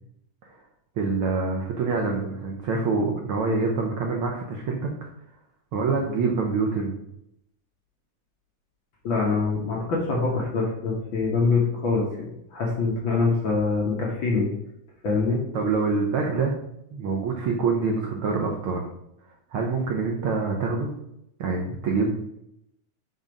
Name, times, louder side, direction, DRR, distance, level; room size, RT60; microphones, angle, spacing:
voice 1, 1.0-4.9 5.7-6.9 15.5-16.5 16.9-18.8 19.5-20.9 21.4-22.1, right 4 dB, 90° right, 1 dB, 1.1 m, -25 dB
voice 2, 9.0-12.2 12.5-14.5 15.0-15.4, left 4 dB, 55° left, -3 dB, 1.4 m, -24 dB
6.2 x 4.0 x 5.1 m, 0.79 s
omnidirectional pair, 3.5 m